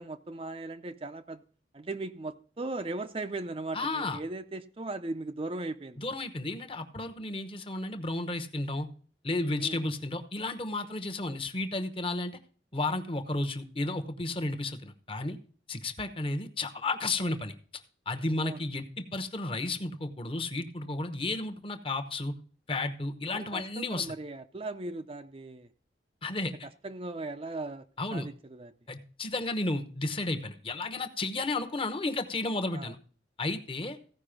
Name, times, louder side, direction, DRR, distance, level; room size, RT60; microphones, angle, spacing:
voice 1, 0.0-1.4 1.7-6.0 9.6-9.8 18.4-18.6 23.3-25.7 26.8-27.8 28.1-28.7 32.7-32.9, right 2 dB, 30° right, 0.5 m, -38 dB
voice 2, 3.7-4.2 6.0-8.9 9.2-12.4 12.7-15.4 15.7-22.3 22.7-24.1 26.2-26.5 28.0-28.3 28.9-33.0 33.4-34.0, left 2 dB, 30° left, 1.0 m, -33 dB
15.5 x 5.3 x 5.0 m
head